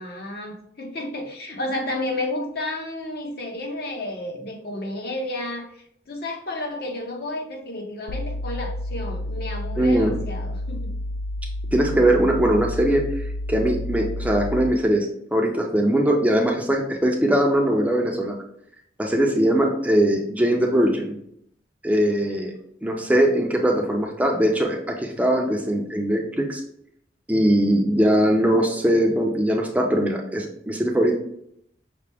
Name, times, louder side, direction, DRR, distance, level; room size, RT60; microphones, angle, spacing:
voice 1, 0.0-10.9, left 1 dB, 60° left, 1 dB, 0.9 m, -31 dB
sound 1, 8.1-14.9, left 1 dB, 80° left, 0.4 m, -30 dB
voice 2, 9.8-10.1 11.7-13.2 13.5-18.4 19.0-21.2 21.8-22.5 22.8-26.6 27.3-31.1, right 1 dB, 10° right, 1 dB, 0.5 m, -21 dB
5.7 x 2.1 x 3.4 m, 0.71 s
head